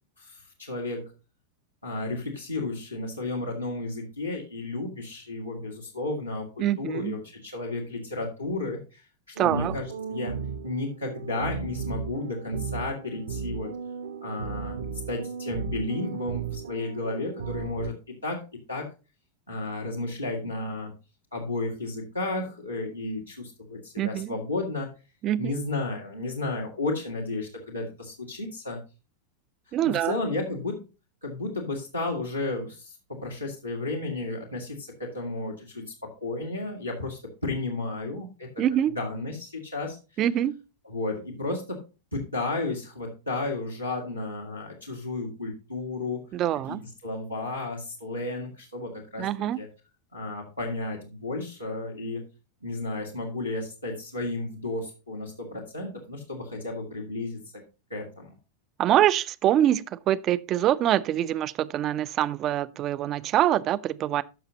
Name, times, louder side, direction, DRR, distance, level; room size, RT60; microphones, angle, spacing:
voice 1, 0.2-1.1 1.8-13.7 14.2-18.4 18.7-18.9 19.5-20.9 21.3-24.9 25.4-28.8 29.9-30.9 31.2-40.0 40.8-41.8 42.1-46.2 46.7-49.3 49.6-49.7 50.1-52.3 52.6-57.4 57.9-58.3, left 2 dB, 90° left, 1.9 m, -33 dB
voice 2, 6.6-7.2 9.4-9.8 24.0-24.3 25.2-25.6 29.7-30.2 38.6-39.0 40.2-40.6 46.3-46.9 49.2-49.6 58.8-64.2, right 12 dB, 35° right, 0.5 m, -25 dB
sound 1, 9.4-17.9, right 6 dB, 65° right, 1.0 m, -35 dB
13.5 x 5.7 x 2.8 m
figure-of-eight pair, 90°, 0 cm